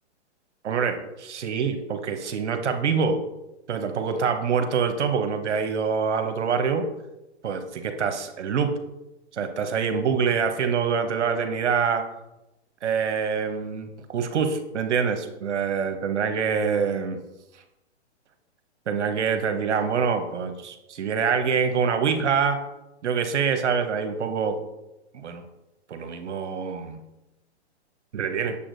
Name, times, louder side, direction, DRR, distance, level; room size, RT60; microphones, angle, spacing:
voice 1, 0.6-3.2 3.7-6.8 7.4-8.7 9.3-12.0 12.8-17.2 18.9-22.6 23.0-24.6 25.1-25.4 25.9-27.0 28.1-28.6, right 6 dB, 75° right, 7 dB, 1.0 m, -25 dB
8.6 x 6.8 x 2.6 m, 0.94 s
hypercardioid pair, 140°, 35 cm